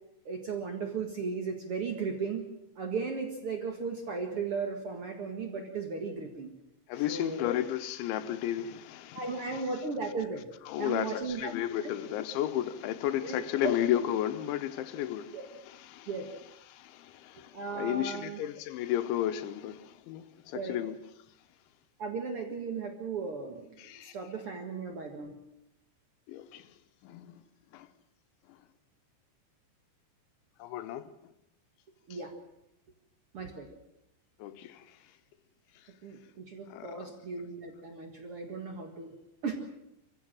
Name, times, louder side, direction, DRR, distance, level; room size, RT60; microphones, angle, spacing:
voice 1, 0.2-2.5 2.7-6.5 7.1-7.5 9.1-10.5 10.8-11.5 11.8-12.0 13.2-13.8 15.3-15.5 16.1-16.3 17.5-18.4 20.5-20.8 22.0-25.4 32.1-32.3 33.3-33.7 36.0-39.1 39.4-39.5, right 4 dB, 80° right, 1.2 m, -36 dB
voice 2, 6.9-9.6 10.7-15.4 15.7-16.1 16.7-21.0 23.8-24.1 26.3-26.7 27.0-27.4 27.7-27.9 30.6-31.1 34.4-34.8 36.7-37.1, left 12 dB, 80° left, 3.2 m, -33 dB
24.5 x 15.5 x 7.6 m
omnidirectional pair, 5.4 m